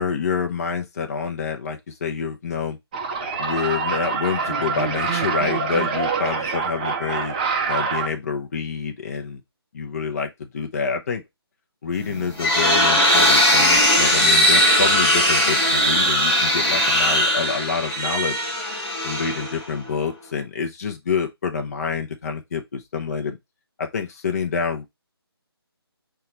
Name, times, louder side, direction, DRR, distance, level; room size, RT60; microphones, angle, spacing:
voice 1, 0.0-2.8 3.4-7.3 7.7-9.4 9.7-11.2 11.8-18.4 19.0-23.4 23.8-24.9, left 6 dB, 40° left, 0.5 m, -27 dB
sound 1, 2.9-8.1, right 5 dB, 20° right, 0.5 m, -25 dB
sound 2, 12.0-19.9, equal, 15° left, 1.1 m, -19 dB
5.5 x 2.3 x 2.9 m
figure-of-eight pair, 155°, 14 cm